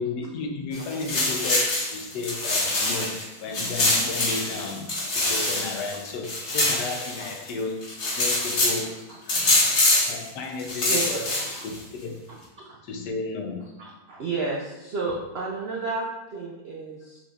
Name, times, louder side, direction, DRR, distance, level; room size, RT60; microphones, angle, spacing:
voice 1, 0.0-1.6 1.9-7.9 8.2-9.6 10.1-11.3 11.6-12.2 12.8-13.7, left 4 dB, 90° left, 3 dB, 1.3 m, -33 dB
sound 1, 0.7-3.2 3.5-7.5 7.8-8.8 9.3-10.2 10.6-11.8, left 2 dB, 45° left, 1.3 m, -24 dB
voice 2, 13.8-17.2, right 3 dB, 70° right, -2 dB, 0.5 m, -32 dB
5.9 x 3.5 x 2.4 m, 1.0 s
omnidirectional pair, 1.7 m